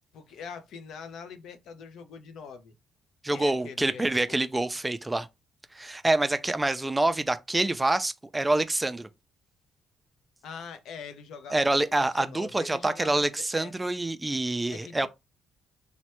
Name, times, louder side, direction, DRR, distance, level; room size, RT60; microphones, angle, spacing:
voice 1, 0.1-2.7 3.3-4.4 10.4-13.7 14.7-15.1, left 6 dB, 80° left, 0.5 m, -43 dB
voice 2, 3.2-5.3 5.7-9.1 11.5-15.1, right 2 dB, 15° right, 0.3 m, -26 dB
3.1 x 2.1 x 2.9 m
cardioid pair, 90°, 0 cm